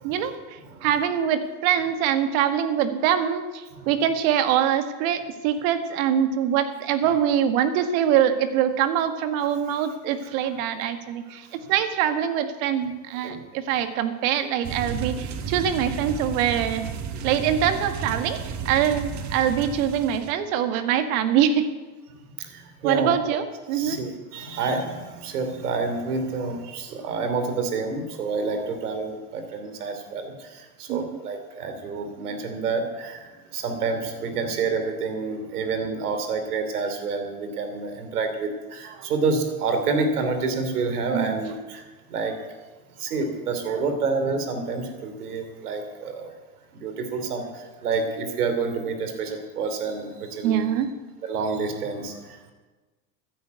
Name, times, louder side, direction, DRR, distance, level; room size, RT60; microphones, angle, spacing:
voice 1, 0.0-16.9 17.2-21.7 22.8-24.0 30.9-31.2 39.0-39.1 41.1-41.3 50.4-50.9, right 9 dB, 65° right, 9 dB, 1.9 m, -24 dB
sound 1, 14.6-20.3, right 5 dB, 40° right, 1.7 m, -33 dB
voice 2, 22.4-23.1 23.7-42.4 43.0-46.3 46.7-50.8 51.2-52.5, right 4 dB, 85° right, 7 dB, 3.1 m, -28 dB
14.0 x 9.9 x 8.2 m, 1.2 s
hypercardioid pair, 95°, 44 cm